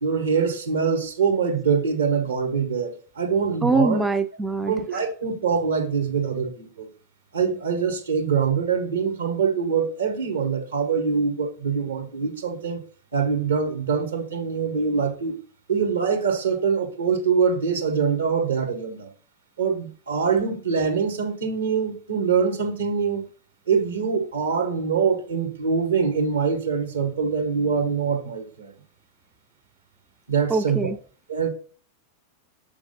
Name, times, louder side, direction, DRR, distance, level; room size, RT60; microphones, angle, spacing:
voice 1, 0.0-4.0 4.7-6.9 7.3-12.8 13.1-15.3 15.7-19.1 19.6-23.2 23.7-28.7 30.3-30.9 31.3-31.5, right 6 dB, 70° right, 1.6 m, -24 dB
voice 2, 3.6-4.7 30.5-31.0, right 3 dB, 10° right, 0.3 m, -23 dB
7.0 x 3.5 x 5.5 m
figure-of-eight pair, 90°, 0 cm